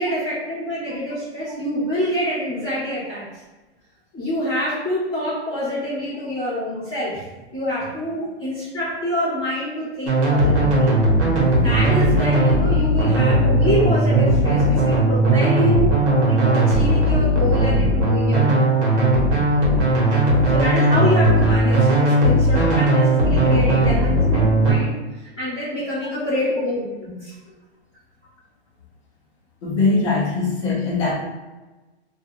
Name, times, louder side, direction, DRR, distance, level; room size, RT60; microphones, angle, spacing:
voice 1, 0.0-3.3 4.1-11.0 11.6-15.9 16.2-18.6 20.5-27.3, equal, 5° left, -19 dB, 0.3 m, -26 dB
sound 1, 10.1-24.7, right 1 dB, 85° right, 1.1 m, -17 dB
voice 2, 29.6-31.1, left 3 dB, 30° left, -5 dB, 0.7 m, -21 dB
2.4 x 2.3 x 2.9 m, 1.2 s
hypercardioid pair, 165°, 34 cm